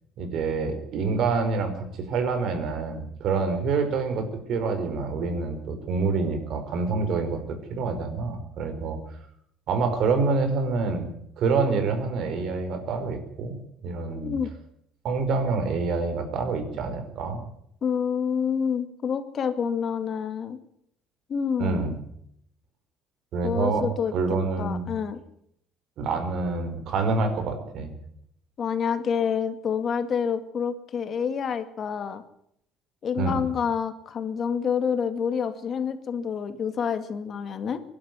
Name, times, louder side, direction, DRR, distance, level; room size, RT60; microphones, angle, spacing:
voice 1, 0.2-9.0 9.7-11.1 11.4-14.3 15.0-17.4 21.6-21.9 23.3-23.8 24.1-24.9 26.0-27.9 33.2-33.4, right 4 dB, 60° right, 7 dB, 5.0 m, -27 dB
voice 2, 14.1-14.5 17.8-20.6 21.3-21.9 23.4-25.2 28.6-32.2 33.0-37.8, left 7 dB, 40° left, 10 dB, 2.2 m, -28 dB
23.0 x 12.0 x 9.6 m, 0.72 s
cardioid pair, 140°, 0 cm